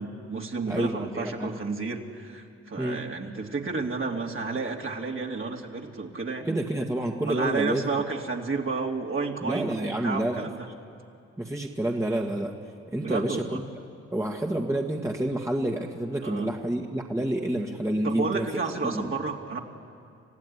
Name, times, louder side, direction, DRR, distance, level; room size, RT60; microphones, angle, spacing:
voice 1, 0.0-6.6 7.2-10.7 13.0-13.6 16.2-16.5 18.0-19.6, right 4 dB, 40° right, 1 dB, 3.0 m, -31 dB
voice 2, 0.7-1.5 2.8-3.0 6.5-7.8 9.4-10.5 11.4-12.5 12.9-13.6 14.1-18.5 18.8-19.1, right 1 dB, 10° right, 0 dB, 2.0 m, -28 dB
27.5 x 15.0 x 10.0 m, 2.5 s
hypercardioid pair, 45°, 31 cm